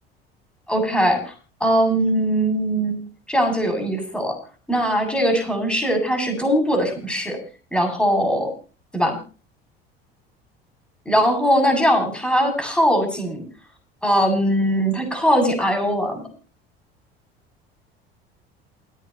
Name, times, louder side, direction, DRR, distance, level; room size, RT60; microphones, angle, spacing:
voice 1, 0.7-1.3 1.6-3.0 3.3-4.4 4.7-7.4 7.7-8.5 8.9-9.2 11.1-13.4 14.0-16.2, equal, 5° left, 5 dB, 7.9 m, -20 dB
28.5 x 9.6 x 3.1 m, 0.36 s
figure-of-eight pair, 65°, 31 cm